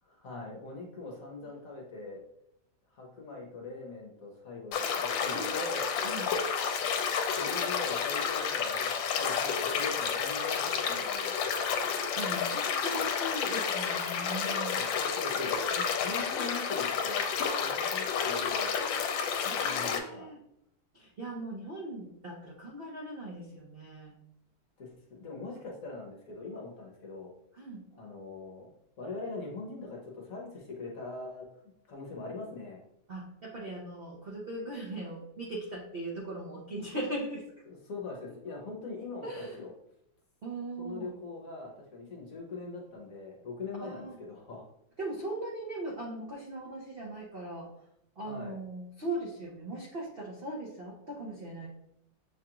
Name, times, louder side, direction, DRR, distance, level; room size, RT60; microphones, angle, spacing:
voice 1, 0.0-2.2 2.9-5.9 7.4-11.4 14.7-18.7 19.6-20.3 24.8-27.3 27.9-28.7 29.0-31.5 31.9-32.8 37.7-39.7 40.8-44.7 48.2-48.6, left 3 dB, 55° left, -1 dB, 1.1 m, -42 dB
sound 1, 4.7-20.0, left 6 dB, 80° left, 1.3 m, -30 dB
voice 2, 11.8-14.7 19.4-20.4 20.9-24.1 27.5-27.8 33.1-37.4 39.2-39.6 40.4-41.1 43.8-44.2 45.0-47.7 48.2-51.7, right 2 dB, 65° right, -3 dB, 0.5 m, -39 dB
7.1 x 2.4 x 2.9 m, 0.77 s
omnidirectional pair, 2.1 m